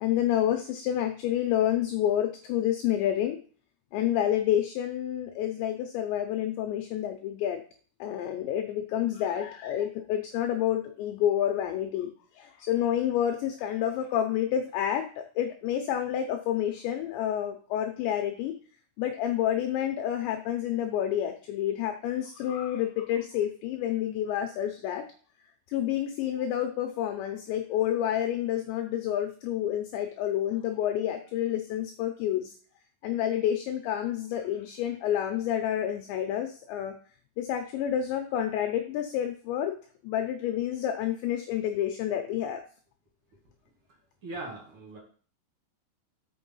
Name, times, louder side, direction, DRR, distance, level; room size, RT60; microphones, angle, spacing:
voice 1, 0.0-3.4 3.9-7.6 8.0-12.1 12.4-18.5 19.0-25.0 25.7-32.5 33.0-36.9 37.4-39.8 40.0-42.6, left 11 dB, 80° left, 5 dB, 2.6 m, -29 dB
voice 2, 44.2-45.0, right 2 dB, 45° right, -1 dB, 1.9 m, -39 dB
6.6 x 6.3 x 5.5 m, 0.43 s
omnidirectional pair, 5.8 m